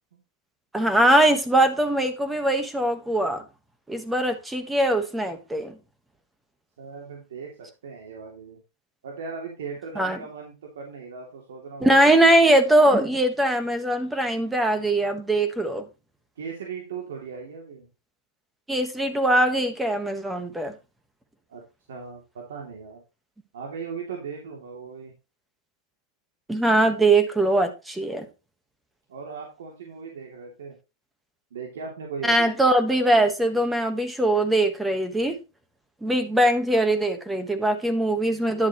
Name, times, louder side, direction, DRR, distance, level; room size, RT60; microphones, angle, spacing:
voice 1, 0.7-3.4 3.9-5.7 9.9-10.2 11.8-15.8 18.7-20.7 26.5-28.2 32.2-35.4 36.0-38.7, right 1 dB, 5° right, 1.3 m, -21 dB
voice 2, 6.8-7.5 7.8-8.6 9.0-12.0 16.4-17.9 21.5-21.6 21.9-23.0 23.5-25.1 29.1-30.8 31.5-32.5 38.5-38.7, right 5 dB, 85° right, 2.6 m, -38 dB
11.0 x 7.4 x 3.0 m
supercardioid pair, 150°, 0 cm